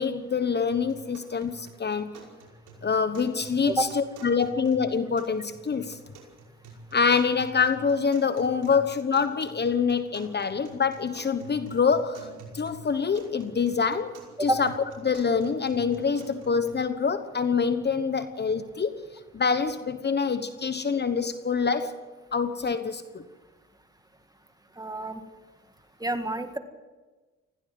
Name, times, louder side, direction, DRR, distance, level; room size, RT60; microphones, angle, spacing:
voice 1, 0.0-2.1 2.8-6.0 6.9-14.7 15.0-19.1 19.3-21.9 22.3-23.2, left 5 dB, 35° left, 11 dB, 1.1 m, -26 dB
sound 1, 0.7-16.7, right 2 dB, 90° right, 5.5 m, -48 dB
voice 2, 24.8-25.2 26.0-26.6, right 1 dB, 10° right, 8 dB, 1.8 m, -28 dB
20.5 x 16.0 x 7.8 m, 1.3 s
cardioid pair, 90°, 30 cm